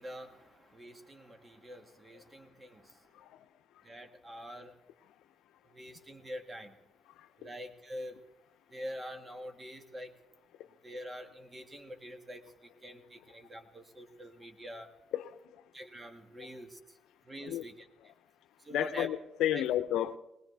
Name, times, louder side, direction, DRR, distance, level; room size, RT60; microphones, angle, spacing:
voice 1, 0.0-3.1 3.8-4.8 5.7-6.8 7.4-8.2 8.7-10.1 10.8-14.9 15.7-16.8 17.3-17.9 18.6-19.1 19.5-19.6, equal, 20° right, 5 dB, 1.9 m, -45 dB
voice 2, 18.7-20.2, left 12 dB, 85° left, 10 dB, 0.6 m, -31 dB
19.5 x 19.5 x 3.4 m, 0.89 s
cardioid pair, 90°, 0 cm